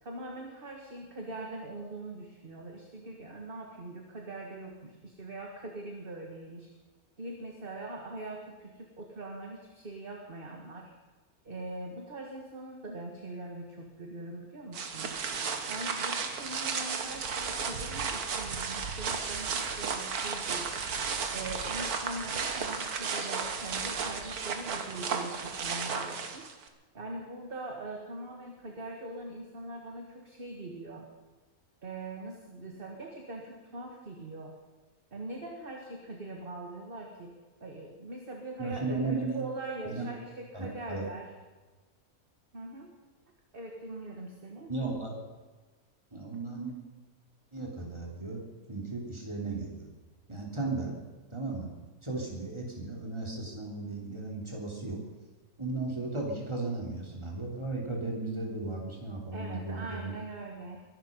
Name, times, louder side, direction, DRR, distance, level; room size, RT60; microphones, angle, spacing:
voice 1, 0.0-6.7 7.2-10.9 11.4-15.1 15.7-20.7 21.3-26.5 26.9-31.1 31.8-34.6 35.1-37.3 37.6-41.3 42.5-42.9 43.5-44.7 59.3-60.8, right 2 dB, 40° right, 1 dB, 1.9 m, -42 dB
sound 1, 14.7-26.7, right 5 dB, 85° right, 1.8 m, -34 dB
voice 2, 38.6-39.4 39.9-40.1 40.5-41.1 44.7-45.2 46.1-46.8 47.5-48.4 48.7-49.9 50.3-51.0 51.3-51.7 52.0-55.0 55.6-60.1, right 3 dB, 20° right, -1 dB, 3.6 m, -35 dB
22.5 x 11.5 x 5.4 m, 1.3 s
omnidirectional pair, 1.5 m